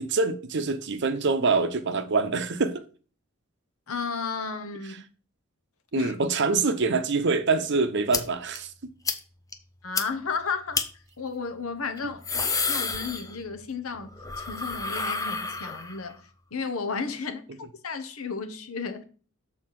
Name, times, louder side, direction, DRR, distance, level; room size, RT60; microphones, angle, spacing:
voice 1, 0.0-2.8 5.9-8.7, right 4 dB, 55° right, 0.7 m, -25 dB
voice 2, 3.9-4.9 6.0-6.1 9.8-10.8 11.2-16.2 16.5-19.0, left 5 dB, 80° left, 1.0 m, -33 dB
sound 1, 8.1-8.2 8.6-8.7 9.1-9.2 9.5-9.6 10.0-10.1 10.7-10.9 12.0-13.6 13.9-16.1, left 4 dB, 15° left, 0.6 m, -29 dB
6.6 x 4.2 x 5.7 m
head